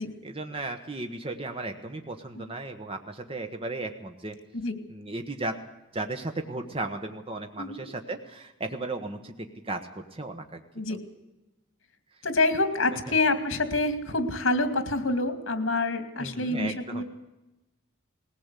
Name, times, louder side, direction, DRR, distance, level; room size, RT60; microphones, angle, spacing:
voice 1, 0.0-4.3 4.9-5.5 5.9-9.3 9.6-10.6 16.2-17.0, right 2 dB, 30° right, 5 dB, 1.2 m, -35 dB
voice 2, 12.2-17.0, left 2 dB, 75° left, 9 dB, 2.5 m, -27 dB
20.0 x 18.0 x 8.3 m, 1.0 s
head